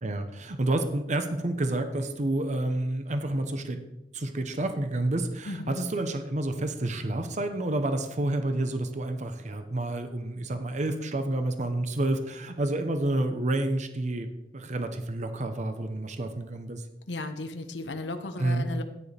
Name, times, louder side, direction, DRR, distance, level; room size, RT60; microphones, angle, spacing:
voice 1, 0.0-3.8 4.1-14.3 14.5-16.8 18.4-18.7, right 1 dB, 45° right, 8 dB, 0.9 m, -29 dB
voice 2, 5.4-5.8 17.1-18.8, left 2 dB, 85° left, 7 dB, 1.0 m, -35 dB
14.0 x 9.8 x 3.4 m, 0.93 s
head